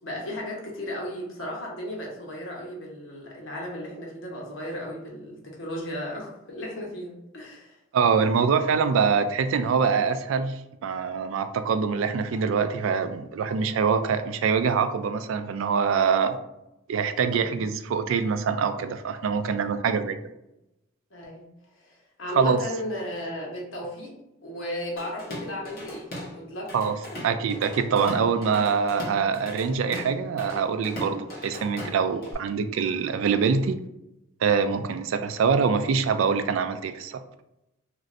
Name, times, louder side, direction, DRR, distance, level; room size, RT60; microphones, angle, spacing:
voice 1, 0.0-7.8 17.3-17.6 21.1-21.5 21.8-24.1 24.4-26.1 26.3-26.7 27.1-27.3, left 1 dB, 80° left, -2 dB, 1.0 m, -35 dB
voice 2, 7.9-16.4 16.9-20.2 22.3-22.6 26.7-27.0 27.2-33.8 34.4-37.2, right 6 dB, 80° right, 10 dB, 0.3 m, -24 dB
Drum kit / Drum, 25.0-26.4 26.7-32.3, left 1 dB, 45° left, 0.9 m, -38 dB
3.1 x 2.5 x 2.5 m, 0.88 s
head